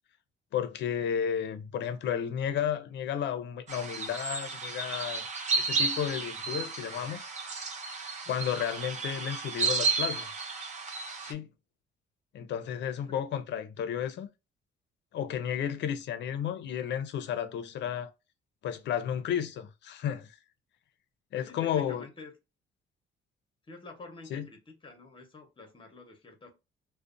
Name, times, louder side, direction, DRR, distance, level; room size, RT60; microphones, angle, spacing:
voice 1, 0.5-5.3 5.6-7.3 8.3-10.3 11.2-11.5 12.3-14.3 15.1-18.1 18.6-20.4 21.3-22.0 24.3-24.4, left 9 dB, 60° left, 0.5 m, -32 dB
sound 1, 3.7-11.3, right 4 dB, 35° right, 0.5 m, -33 dB
voice 2, 21.3-22.3 23.7-26.5, left 3 dB, 25° left, 0.8 m, -48 dB
2.5 x 2.1 x 2.5 m
cardioid pair, 115°, 21 cm